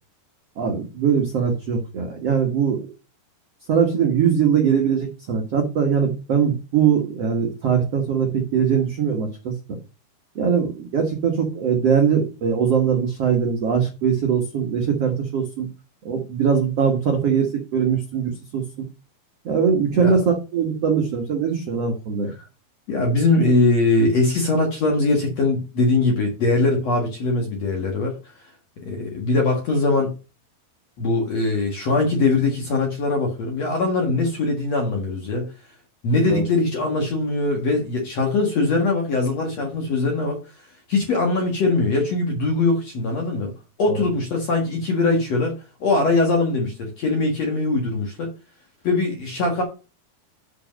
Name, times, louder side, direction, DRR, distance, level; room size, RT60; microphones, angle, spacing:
voice 1, 0.6-2.9 3.7-9.5 10.3-15.7 16.0-18.6 19.4-22.3 36.3-36.4, right 7 dB, 80° right, 1.3 m, -21 dB
voice 2, 22.9-28.2 28.8-30.1 31.0-35.5 36.0-40.4 40.9-43.5 43.8-45.5 45.8-48.3 48.8-49.6, left 3 dB, 55° left, 2.0 m, -21 dB
8.3 x 5.1 x 5.2 m
omnidirectional pair, 5.2 m